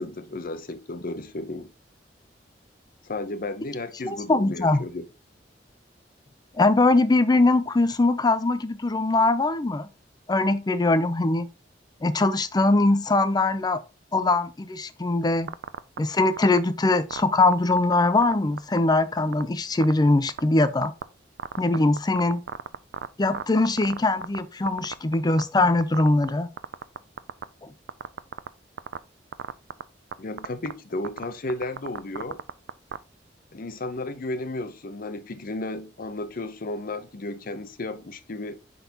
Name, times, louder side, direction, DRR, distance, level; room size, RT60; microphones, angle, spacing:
voice 1, 0.0-1.7 3.0-5.0 30.2-32.4 33.5-38.6, left 2 dB, 50° left, 0.7 m, -33 dB
voice 2, 4.0-4.8 6.6-9.9 10.3-11.5 12.0-13.8 14.1-15.5 16.0-20.9 21.6-22.4 23.2-26.5 27.6-27.7, left 2 dB, 20° left, 0.5 m, -22 dB
sound 1, 15.5-16.0 16.4-16.6 17.1-18.3 18.6-18.8 19.2-19.4 19.8-19.9 20.3-21.0 21.4-24.4 24.7-25.4 25.7-26.3 26.6-27.4 27.9-28.5 28.8-29.0 29.3-29.8 30.1-30.2 30.4-30.7 31.0-33.0, right 7 dB, 70° right, 0.4 m, -32 dB
8.9 x 3.9 x 2.9 m
head